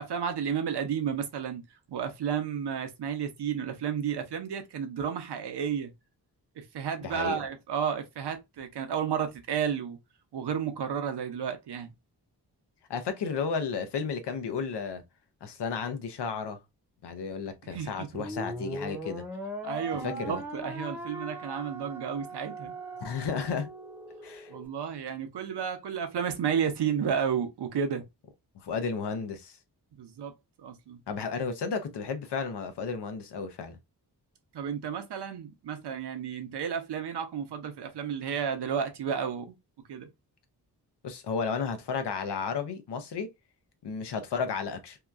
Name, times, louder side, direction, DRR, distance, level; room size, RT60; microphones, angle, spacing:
voice 1, 0.0-1.6 1.9-5.9 6.6-10.0 10.3-11.9 17.7-18.3 19.6-22.7 24.5-28.0 29.9-30.3 30.6-31.0 34.5-39.6 39.9-40.1, right 7 dB, 80° right, 0.7 m, -32 dB
voice 2, 7.0-7.4 12.9-15.0 15.4-16.6 17.0-19.2 20.0-20.4 23.0-23.7 24.2-24.5 28.5-29.6 31.1-33.8 41.0-43.3 43.8-45.0, left 5 dB, 90° left, 0.7 m, -33 dB
sound 1, 18.1-24.7, right 1 dB, 5° right, 0.6 m, -39 dB
2.8 x 2.3 x 2.3 m
wide cardioid pair, 115°, 40 cm